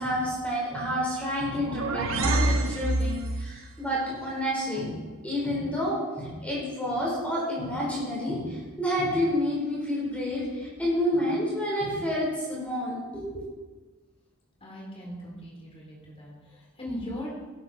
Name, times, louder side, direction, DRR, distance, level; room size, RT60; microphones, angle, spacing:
voice 1, 0.0-4.9 5.2-13.4, equal, 5° left, -5 dB, 4.5 m, -29 dB
sound 1, 1.3-3.6, right 2 dB, 65° right, 1.1 m, -27 dB
voice 2, 3.0-3.5 14.6-17.3, equal, 25° left, -3 dB, 4.1 m, -40 dB
15.5 x 12.0 x 4.5 m, 1.3 s
head